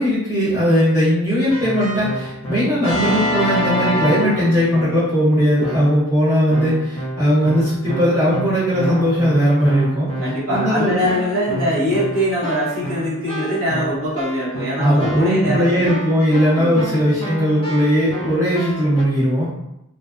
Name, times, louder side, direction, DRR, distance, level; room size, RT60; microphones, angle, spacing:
voice 1, 0.0-10.1 10.5-11.1 14.8-19.5, equal, 15° right, -11 dB, 0.9 m, -18 dB
Keyboard (musical), 1.5-5.2 5.6-6.1 6.5-19.0, equal, 25° left, 0.5 m, -28 dB
voice 2, 10.2-15.8 16.6-16.9, equal, 65° right, -9 dB, 1.3 m, -22 dB
2.4 x 2.0 x 2.5 m, 0.82 s
head